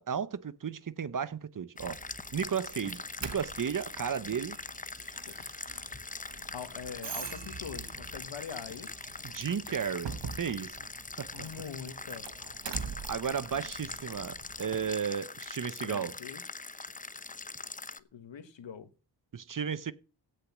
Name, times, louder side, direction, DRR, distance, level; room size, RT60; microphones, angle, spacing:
voice 1, 0.0-2.0 2.3-4.6 9.2-10.8 11.2-11.3 13.1-16.1 19.3-19.9, right 7 dB, 45° right, 0.8 m, -34 dB
sound 1, 1.8-18.0, left 3 dB, 20° left, 0.7 m, -43 dB
Doorbell, 1.8-14.9, right 6 dB, 65° right, 1.2 m, -45 dB
voice 2, 6.5-8.9 11.3-12.3 15.8-16.4 18.1-18.9, left 7 dB, 75° left, 1.6 m, -43 dB
16.5 x 6.6 x 6.1 m
wide cardioid pair, 130°, 45 cm